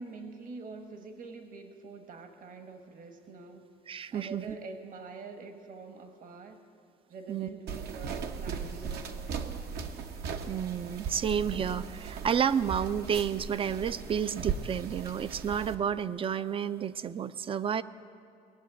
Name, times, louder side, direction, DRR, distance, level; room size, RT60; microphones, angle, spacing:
voice 1, 0.0-3.6 3.9-6.6 7.1-9.5, right 4 dB, 50° right, 6 dB, 1.4 m, -45 dB
voice 2, 3.9-4.4 7.3-7.5 10.5-17.8, right 8 dB, 35° right, 15 dB, 0.4 m, -31 dB
sound 1, 7.7-15.7, right 6 dB, 70° right, 1.0 m, -38 dB
19.0 x 7.5 x 9.3 m, 2.4 s
cardioid pair, 110°, 17 cm